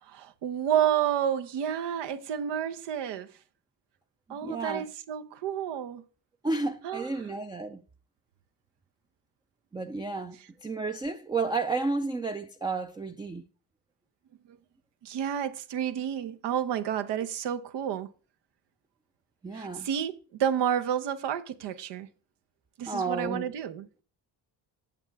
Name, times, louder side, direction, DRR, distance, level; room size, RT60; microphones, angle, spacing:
voice 1, 0.0-3.3 4.3-6.0 6.8-7.1 14.5-14.6 15.0-18.1 19.5-22.1 22.8-24.0, right 9 dB, 85° right, 0.9 m, -30 dB
voice 2, 4.3-4.9 6.4-7.8 9.7-13.5 19.4-19.9 22.9-23.5, right 3 dB, 10° right, 0.3 m, -32 dB
8.8 x 7.3 x 3.4 m
cardioid pair, 100°, 41 cm